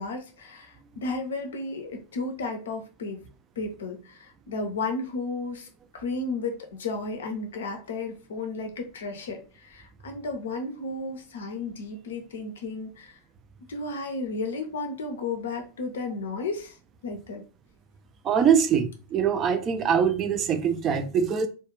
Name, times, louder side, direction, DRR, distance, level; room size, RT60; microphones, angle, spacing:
voice 1, 0.0-3.2 3.6-5.7 5.9-13.2 13.7-16.8 17.0-17.4, left 3 dB, 65° left, 0.5 m, -33 dB
voice 2, 18.2-21.5, right 7 dB, 30° right, 0.3 m, -23 dB
2.3 x 2.1 x 3.0 m
figure-of-eight pair, 90°, 0 cm